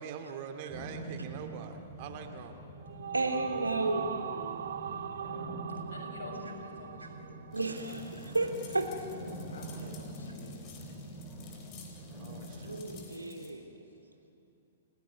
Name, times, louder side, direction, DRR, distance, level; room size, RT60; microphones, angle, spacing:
voice 1, 0.0-2.7 9.8-10.0 12.1-12.8, right 7 dB, 40° right, 6 dB, 2.3 m, -44 dB
sound 1, 0.7-13.0, right 1 dB, 5° right, 6.0 m, -45 dB
sound 2, 2.6-8.1, right 8 dB, 60° right, 0.9 m, -40 dB
voice 2, 3.1-4.2 7.5-9.0 12.6-13.6, right 2 dB, 85° right, 4 dB, 2.9 m, -32 dB
voice 3, 5.9-7.3 9.5-10.5, left 2 dB, 65° left, 0 dB, 7.3 m, -48 dB
sound 3, 7.5-13.5, left 6 dB, 30° left, 3.9 m, -55 dB
29.5 x 16.0 x 9.7 m, 2.7 s
figure-of-eight pair, 110°, 0 cm